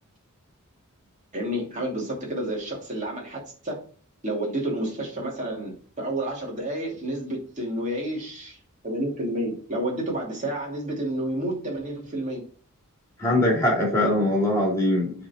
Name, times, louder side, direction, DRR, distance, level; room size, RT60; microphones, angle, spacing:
voice 1, 1.3-3.8 4.2-8.6 8.8-12.4, right 1 dB, 35° right, 2.6 m, -30 dB
voice 2, 13.2-15.3, left 1 dB, 15° left, 3.0 m, -22 dB
7.4 x 4.2 x 4.3 m
head